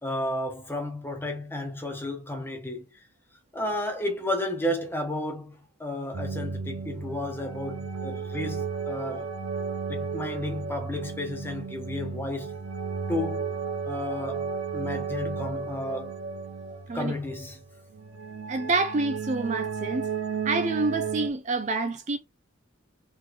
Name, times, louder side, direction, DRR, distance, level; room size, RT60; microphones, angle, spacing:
voice 1, 0.0-2.8 3.5-9.3 9.9-12.6 13.1-13.4 13.9-16.1 16.9-17.6, left 1 dB, 10° left, 1.0 m, -32 dB
sound 1, 6.1-21.3, right 5 dB, 90° right, 0.9 m, -34 dB
voice 2, 18.5-20.1 20.4-22.2, right 3 dB, 35° right, 0.4 m, -27 dB
3.7 x 3.2 x 3.9 m
head